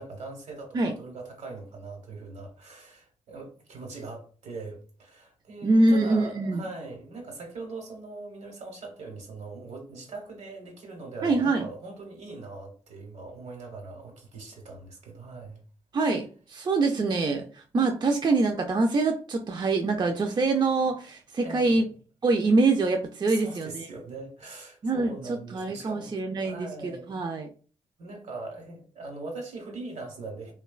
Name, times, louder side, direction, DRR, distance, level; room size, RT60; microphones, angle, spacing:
voice 1, 0.0-15.6 21.4-21.9 23.3-27.1 28.0-30.5, right 3 dB, 75° right, 1.1 m, -41 dB
voice 2, 5.6-6.6 11.2-11.7 15.9-21.8 22.2-23.9 24.8-27.5, right 3 dB, 35° right, 0.4 m, -25 dB
3.0 x 2.2 x 2.3 m
cardioid pair, 60°, 12 cm